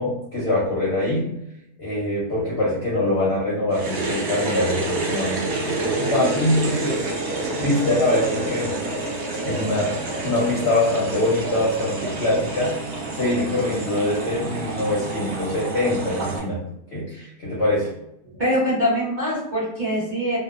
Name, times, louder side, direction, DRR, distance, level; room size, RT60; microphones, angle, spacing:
voice 1, 0.0-1.3 1.8-7.0 7.6-8.7 9.4-12.7 13.1-16.6 16.9-17.9, left 1 dB, 60° left, -6 dB, 0.7 m, -23 dB
sound 1, 3.7-16.4, right 2 dB, 80° right, 0.5 m, -28 dB
voice 2, 18.4-20.4, equal, 35° right, -8 dB, 0.9 m, -23 dB
2.7 x 2.1 x 2.4 m, 0.81 s
omnidirectional pair, 1.8 m